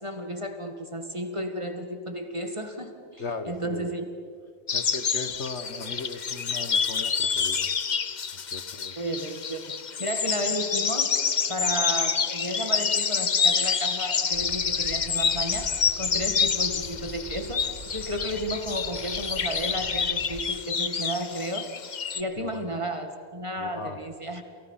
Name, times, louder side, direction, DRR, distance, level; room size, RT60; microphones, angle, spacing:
voice 1, 0.0-4.1 9.0-11.1 11.5-21.7 22.1-24.4, right 1 dB, 20° right, 6 dB, 2.1 m, -33 dB
voice 2, 3.2-3.9 4.7-7.7 8.5-8.9 22.4-22.7 23.6-24.0, left 3 dB, 55° left, 9 dB, 1.6 m, -37 dB
sound 1, 4.7-22.2, left 6 dB, 40° left, 0.8 m, -27 dB
sound 2, 14.3-20.4, right 1 dB, 50° right, 2.8 m, -43 dB
29.5 x 28.5 x 5.8 m, 2.3 s
omnidirectional pair, 1.5 m